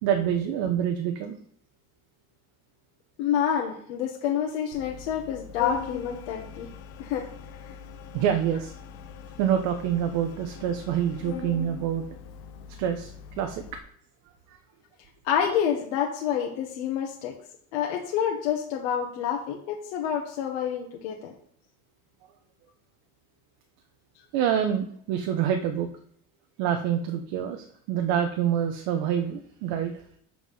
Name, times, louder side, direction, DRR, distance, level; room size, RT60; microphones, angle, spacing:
voice 1, 0.0-1.4 8.1-8.7 9.4-12.1 12.8-13.6 24.3-25.9 26.6-29.9, right 9 dB, 55° right, 5 dB, 0.9 m, -26 dB
voice 2, 3.2-6.7 7.0-7.2 7.7-7.8 15.2-17.3 17.7-21.3, left 8 dB, 90° left, 1 dB, 1.3 m, -28 dB
Organ, 4.7-13.8, left 7 dB, 45° left, 0.8 m, -41 dB
7.5 x 4.6 x 5.5 m, 0.64 s
cardioid pair, 175°, 33 cm